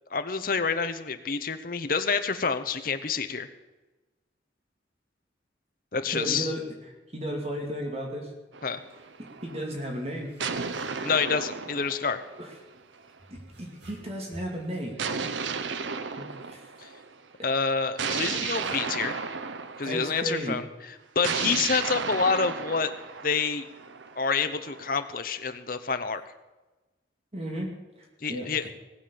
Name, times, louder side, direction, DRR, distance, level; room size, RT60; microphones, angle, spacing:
voice 1, 0.1-3.5 5.9-6.5 8.6-8.8 11.0-12.2 16.8-16.9 17.4-19.1 19.8-20.6 21.1-22.9 23.2-23.6 24.2-26.2 28.2-28.7, left 5 dB, 50° left, 9 dB, 1.0 m, -27 dB
voice 2, 6.1-6.6 7.1-8.3 9.4-10.3 12.4-12.5 13.3-15.0 16.2-16.7 18.6-18.7 19.8-20.6 27.3-27.7 28.0-28.7, equal, 35° right, 0 dB, 2.3 m, -34 dB
sound 1, 8.5-9.6 10.4-13.0 15.0-17.1 18.0-20.3 21.2-25.0, right 5 dB, 85° right, 0.9 m, -34 dB
sound 2, 8.8-8.9 9.2-9.4 10.2-12.2 13.2-14.8, right 1 dB, 65° right, 2.8 m, -50 dB
18.5 x 7.5 x 6.9 m, 1.1 s
head